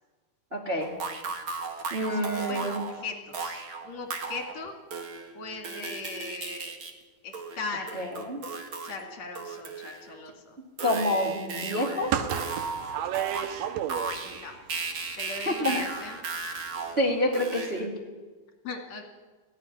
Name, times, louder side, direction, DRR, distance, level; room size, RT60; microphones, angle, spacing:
voice 1, 0.5-0.9 1.9-2.8 7.9-8.4 10.8-12.1 15.5-15.8 17.0-17.9, left 1 dB, 20° right, -1 dB, 2.2 m, -27 dB
sound 1, 0.8-4.6 4.9-6.9 7.3-9.0 9.3-10.2 10.8-17.9, right 4 dB, 45° right, 2.3 m, -36 dB
voice 2, 2.1-4.7 5.3-6.8 7.2-8.1 8.8-10.6 13.9-14.6 15.2-16.2 18.6-19.0, left 4 dB, 55° left, 4 dB, 3.5 m, -39 dB
sound 2, 12.0-14.4 14.7-16.3 16.6-16.7 17.0-17.1, right 10 dB, 90° right, 2.7 m, -32 dB
18.0 x 15.0 x 9.8 m, 1.3 s
omnidirectional pair, 3.8 m